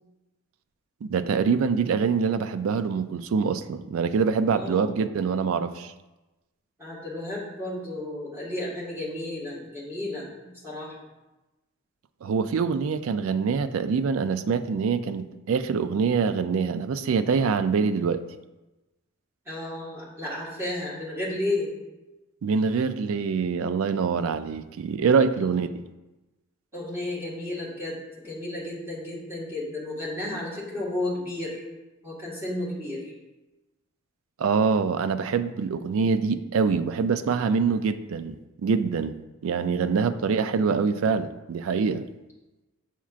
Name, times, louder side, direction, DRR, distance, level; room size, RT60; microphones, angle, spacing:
voice 1, 1.0-5.9 12.2-18.2 22.4-25.7 34.4-39.1 39.4-42.1, right 5 dB, 70° right, 12 dB, 0.3 m, -25 dB
voice 2, 4.5-4.9 6.8-11.0 19.4-21.7 25.3-25.5 26.7-28.0 28.2-31.6 32.0-33.1 39.9-40.2, left 1 dB, 10° right, -6 dB, 1.5 m, -33 dB
7.2 x 5.7 x 2.4 m, 1.1 s
head